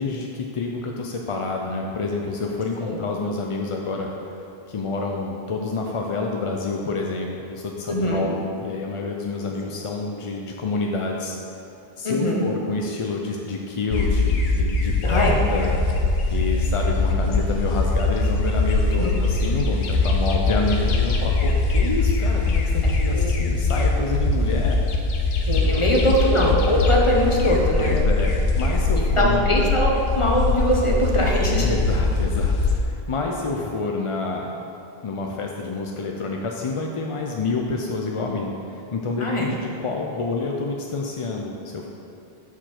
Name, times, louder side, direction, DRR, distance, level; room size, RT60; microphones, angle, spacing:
voice 1, 0.0-4.4 4.7-11.3 12.0-15.8 16.3-24.8 25.5-26.2 27.8-29.5 31.5-34.5 35.0-41.9, left 3 dB, 45° left, 0 dB, 0.4 m, -28 dB
voice 2, 7.9-8.3 12.0-12.4 15.0-15.4 18.9-19.1 23.1-23.3 25.4-28.0 28.9-31.7 39.2-39.5, equal, 30° left, -2 dB, 1.0 m, -22 dB
sound 1, 13.9-32.8, left 3 dB, 70° left, 0.9 m, -22 dB
7.0 x 4.5 x 5.8 m, 2.7 s
omnidirectional pair, 1.1 m